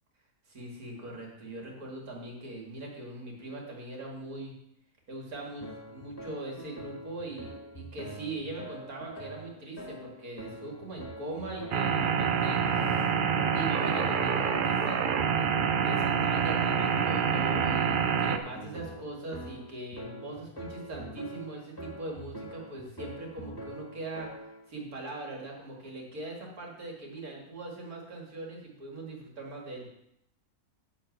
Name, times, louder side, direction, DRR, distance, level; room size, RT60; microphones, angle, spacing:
voice 1, 0.5-4.6 5.1-13.1 13.5-15.0 15.4-24.3 24.7-29.9, right 2 dB, 80° right, -1 dB, 2.8 m, -41 dB
sound 1, 5.6-24.7, right 1 dB, 15° left, 1.5 m, -45 dB
sound 2, 11.7-18.4, right 7 dB, 55° right, 0.6 m, -27 dB
10.5 x 4.3 x 7.9 m, 0.77 s
omnidirectional pair, 1.5 m